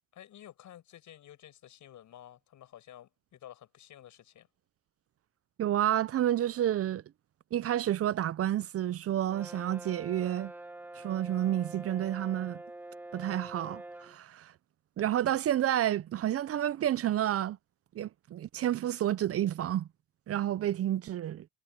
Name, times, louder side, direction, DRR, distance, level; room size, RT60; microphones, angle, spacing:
voice 1, 0.1-4.5, left 11 dB, 75° left, 7.9 m, -52 dB
voice 2, 5.6-7.0 7.5-10.5 11.0-12.6 13.1-14.5 15.0-17.6 17.9-19.9 20.3-21.5, right 11 dB, 50° right, 0.5 m, -30 dB
Brass instrument, 9.3-14.2, right 2 dB, 5° right, 0.6 m, -46 dB
cardioid pair, 90°, 30 cm